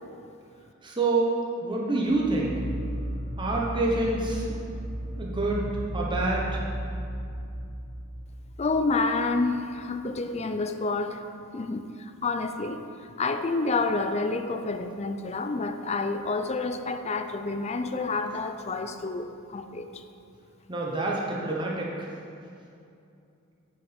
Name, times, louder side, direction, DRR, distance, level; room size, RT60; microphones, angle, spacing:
voice 1, 0.8-1.3 1.6-2.5 3.4-4.4 5.2-5.7 5.9-6.5 20.7-21.9, right 2 dB, 20° right, -3 dB, 0.9 m, -27 dB
sound 1, 2.0-9.3, right 1 dB, 80° right, 1.3 m, -35 dB
voice 2, 8.6-11.3 11.5-20.0, left 3 dB, 30° left, 8 dB, 0.4 m, -29 dB
9.4 x 5.8 x 5.1 m, 2.5 s
head